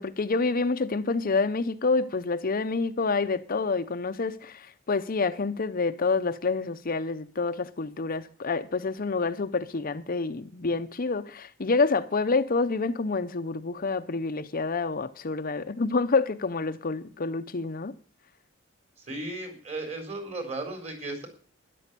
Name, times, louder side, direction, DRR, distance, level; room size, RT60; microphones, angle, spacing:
voice 1, 0.0-17.9, left 4 dB, 45° left, 0.7 m, -28 dB
voice 2, 19.1-21.3, right 2 dB, 35° right, 4.1 m, -35 dB
12.5 x 11.0 x 6.8 m
head